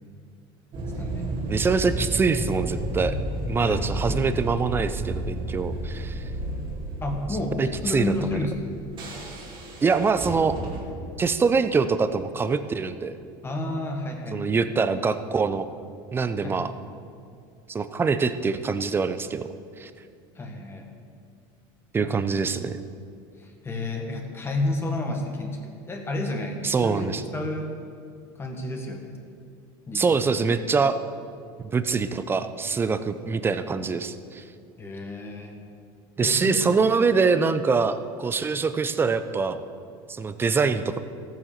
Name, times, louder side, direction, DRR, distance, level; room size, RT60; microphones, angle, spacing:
sound 1, 0.7-10.8, right 1 dB, 40° right, 2.5 m, -32 dB
voice 1, 1.0-1.3 3.6-4.2 7.0-8.7 13.4-14.5 16.4-16.7 20.3-20.9 22.0-22.2 23.4-25.6 25.9-27.7 28.4-29.1 29.9-30.4 34.8-35.6 36.2-36.6, left 2 dB, 20° left, 2 dB, 1.6 m, -31 dB
voice 2, 1.5-3.2 3.5-6.2 7.6-8.1 9.8-10.6 11.2-13.1 14.3-15.7 16.1-16.7 17.7-19.4 19.8-19.9 21.9-22.8 26.6-27.2 29.9-31.0 31.7-34.4 36.2-39.6 40.1-41.0, right 5 dB, 20° right, 12 dB, 0.6 m, -24 dB
13.5 x 9.2 x 6.7 m, 2.3 s
supercardioid pair, 125°, 12 cm